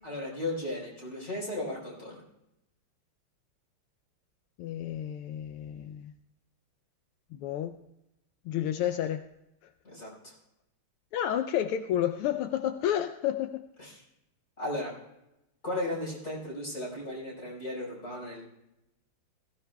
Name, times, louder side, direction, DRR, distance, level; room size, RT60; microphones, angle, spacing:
voice 1, 0.0-2.2 9.8-10.3 13.8-14.0 14.6-14.9 15.6-18.5, left 1 dB, 30° left, -3 dB, 5.1 m, -35 dB
voice 2, 4.6-6.1 7.3-7.7 8.5-9.3 11.1-13.7, left 11 dB, 85° left, 8 dB, 1.5 m, -30 dB
20.5 x 15.5 x 2.3 m, 0.89 s
omnidirectional pair, 2.4 m